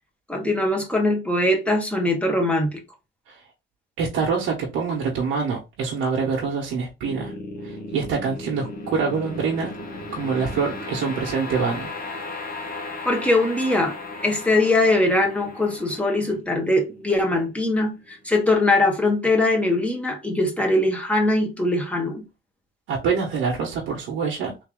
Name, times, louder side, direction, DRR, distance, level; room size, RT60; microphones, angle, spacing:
voice 1, 0.3-2.8 13.0-14.0 14.2-22.2, left 2 dB, 5° left, 1.3 m, -21 dB
voice 2, 4.0-7.3 7.6-9.7 10.1-11.9 22.9-24.5, right 5 dB, 90° right, 1.1 m, -25 dB
sound 1, 7.0-18.2, left 2 dB, 50° left, 1.2 m, -36 dB
3.4 x 2.8 x 3.6 m
cardioid pair, 90°, 20 cm